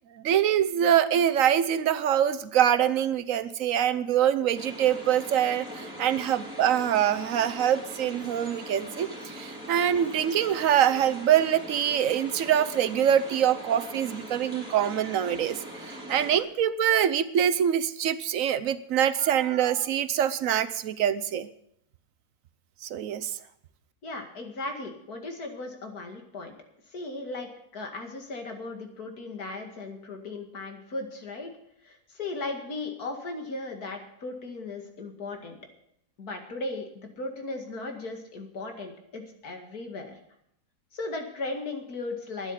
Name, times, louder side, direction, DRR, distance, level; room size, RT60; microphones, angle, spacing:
voice 1, 0.2-21.5 22.8-23.4, right 10 dB, 65° right, 14 dB, 1.1 m, -24 dB
sound 1, 4.5-16.4, equal, 5° right, 3.5 m, -41 dB
voice 2, 24.0-26.5 26.9-31.5 31.8-35.6 36.2-40.2 40.9-42.5, left 2 dB, 75° left, 4 dB, 2.6 m, -37 dB
12.0 x 9.8 x 8.3 m, 0.74 s
omnidirectional pair, 1.6 m